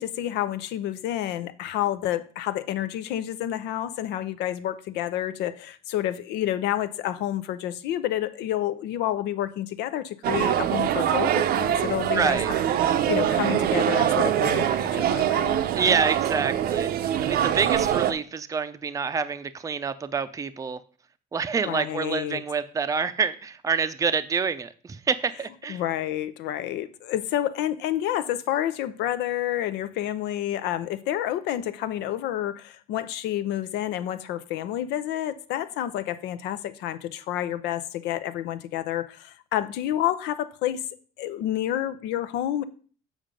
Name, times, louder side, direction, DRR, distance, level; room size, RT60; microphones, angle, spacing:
voice 1, 0.0-12.4 12.9-15.6 21.7-22.4 25.7-40.8 41.2-42.6, left 12 dB, 90° left, 0.6 m, -29 dB
sound 1, 10.2-18.1, right 10 dB, 65° right, 0.6 m, -24 dB
voice 2, 12.2-12.5 15.8-16.9 17.2-20.8 21.3-25.8, right 5 dB, 20° right, 0.5 m, -27 dB
7.3 x 5.0 x 5.1 m
cardioid pair, 110°, 17 cm